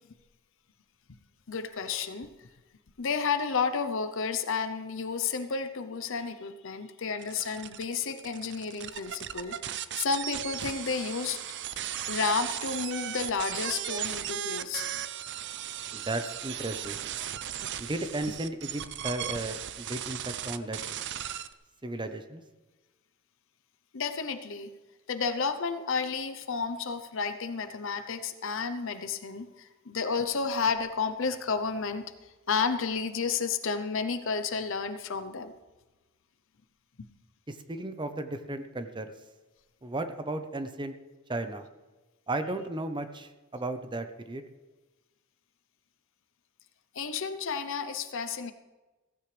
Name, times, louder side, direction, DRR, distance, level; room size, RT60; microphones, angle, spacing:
voice 1, 1.5-2.3 3.0-9.6 10.0-11.4 12.1-14.9 23.9-24.7 25.1-32.0 32.5-35.5 46.9-48.5, left 5 dB, 65° left, 10 dB, 0.8 m, -31 dB
sound 1, 7.2-21.5, right 10 dB, 55° right, 0.6 m, -36 dB
voice 2, 15.9-17.0 17.8-21.0 21.8-22.4 37.5-39.1 39.8-41.0 41.3-41.7 42.3-44.4, right 2 dB, 20° right, 8 dB, 0.8 m, -35 dB
16.0 x 15.5 x 3.3 m, 1.2 s
head